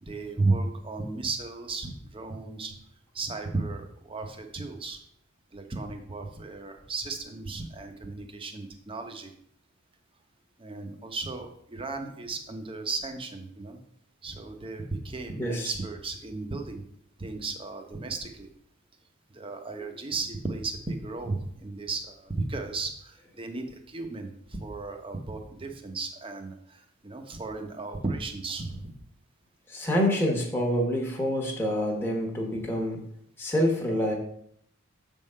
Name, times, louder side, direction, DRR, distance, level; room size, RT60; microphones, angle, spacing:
voice 1, 0.0-2.8 3.1-5.0 5.5-9.3 10.6-13.8 14.2-16.8 17.2-18.5 19.3-28.9, right 3 dB, 25° right, 5 dB, 0.8 m, -34 dB
voice 2, 15.4-15.7 19.8-19.9 29.7-33.0 33.4-34.2, equal, 10° left, -2 dB, 1.0 m, -27 dB
7.4 x 3.7 x 5.5 m, 0.68 s
head